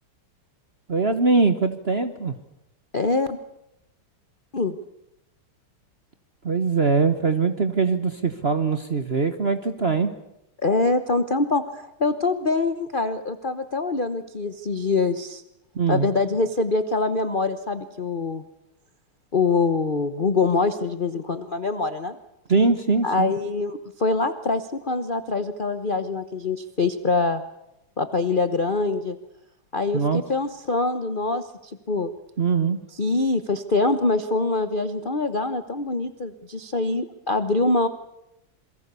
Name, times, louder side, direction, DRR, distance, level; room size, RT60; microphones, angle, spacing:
voice 1, 0.9-2.4 6.4-10.1 15.7-16.1 22.5-23.3 29.9-30.2 32.4-32.8, right 4 dB, 40° right, 9 dB, 1.0 m, -22 dB
voice 2, 2.9-3.4 4.5-4.8 10.6-15.4 15.9-18.5 19.3-22.2 23.0-27.4 28.0-29.2 29.7-32.1 33.0-37.9, left 3 dB, 40° left, 10 dB, 0.7 m, -24 dB
28.0 x 23.0 x 6.9 m, 0.84 s
omnidirectional pair, 2.4 m